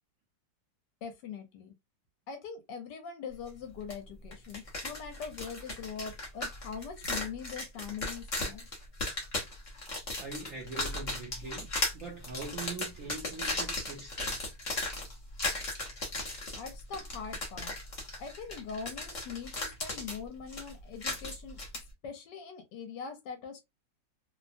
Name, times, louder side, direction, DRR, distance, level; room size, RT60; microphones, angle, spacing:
voice 1, 1.0-1.7 2.3-8.7 16.5-17.7 18.2-21.6 22.0-23.6, left 6 dB, 70° left, 1.3 m, -42 dB
sound 1, 3.9-4.0 4.3-21.8, left 2 dB, 40° left, 0.7 m, -37 dB
voice 2, 10.2-14.5, right 3 dB, 70° right, 0.8 m, -42 dB
3.2 x 2.1 x 2.5 m
omnidirectional pair, 2.1 m